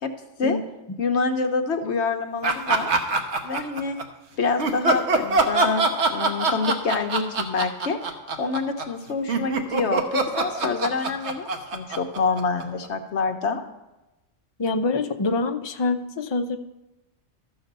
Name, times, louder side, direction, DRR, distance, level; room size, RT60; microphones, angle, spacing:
voice 1, 1.0-2.9 3.4-4.0 4.4-8.0 8.4-13.6, left 4 dB, 65° left, 6 dB, 1.1 m, -26 dB
sound 1, 2.4-4.0 4.6-12.9, right 3 dB, 65° right, 1.3 m, -23 dB
voice 2, 14.6-16.6, left 3 dB, 35° left, 6 dB, 0.4 m, -25 dB
13.0 x 7.1 x 5.3 m, 1.0 s
omnidirectional pair, 1.3 m